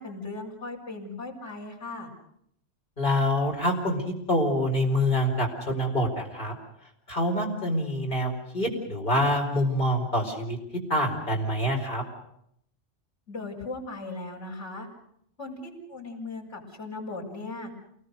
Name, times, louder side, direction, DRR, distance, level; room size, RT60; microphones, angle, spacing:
voice 1, 0.0-2.1 13.3-14.9 15.4-17.7, left 2 dB, 70° left, 1 dB, 6.9 m, -38 dB
voice 2, 3.0-4.0 4.3-6.5 7.1-10.6 10.9-12.0, left 1 dB, 45° left, 0 dB, 5.0 m, -26 dB
28.5 x 20.5 x 6.6 m, 0.72 s
omnidirectional pair, 1.2 m